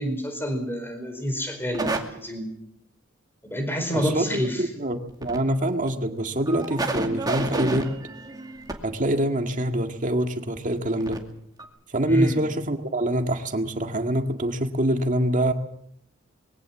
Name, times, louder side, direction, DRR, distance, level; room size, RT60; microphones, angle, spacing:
voice 1, 0.0-2.5 3.4-4.6 12.1-12.4, equal, 10° left, 6 dB, 4.6 m, -28 dB
sound 1, 1.7-2.0 5.1-5.4 5.9-6.0 6.5-8.7 10.6-10.7 11.0-11.2 11.6-11.7, right 2 dB, 20° right, 2.3 m, -29 dB
voice 2, 3.9-7.9 8.8-11.2 11.9-15.5, right 1 dB, 40° right, 5 dB, 1.9 m, -25 dB
22.0 x 16.5 x 7.4 m, 0.72 s
head